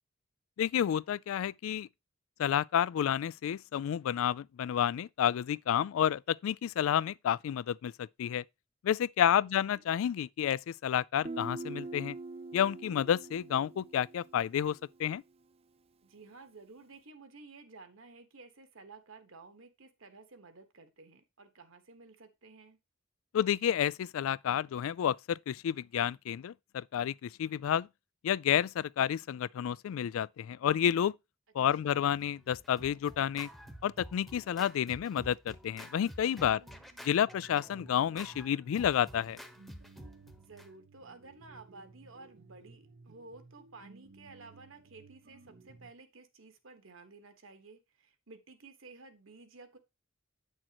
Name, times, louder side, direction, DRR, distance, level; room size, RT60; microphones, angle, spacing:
voice 1, 0.6-1.9 2.4-8.4 8.8-12.2 12.5-15.2 23.3-27.9 28.2-31.1 31.5-33.5 33.8-36.6 37.0-39.4, left 9 dB, 75° left, 0.3 m, -30 dB
voice 2, 9.4-9.8 16.0-22.8 31.8-32.0 36.5-36.9 40.4-49.8, right 3 dB, 70° right, 1.3 m, -54 dB
Guitar, 11.2-14.9, right 3 dB, 30° right, 0.4 m, -43 dB
Scratching (performance technique), 32.2-40.7, equal, ahead, 1.0 m, -50 dB
sound 1, 33.6-45.9, right 3 dB, 55° right, 0.8 m, -59 dB
8.9 x 6.4 x 2.9 m
head